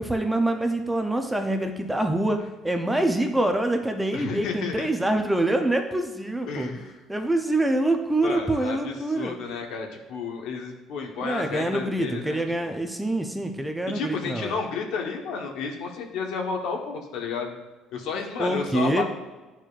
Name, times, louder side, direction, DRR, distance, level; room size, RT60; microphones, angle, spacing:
voice 1, 0.0-2.4 2.6-6.8 7.1-9.3 11.2-14.5 18.4-19.0, right 1 dB, 5° right, 5 dB, 0.5 m, -25 dB
voice 2, 4.1-4.9 6.5-7.0 8.2-12.8 13.9-17.5 17.9-19.0, left 5 dB, 75° left, 2 dB, 1.0 m, -32 dB
10.5 x 4.5 x 2.4 m, 1.2 s
cardioid pair, 150°, 0 cm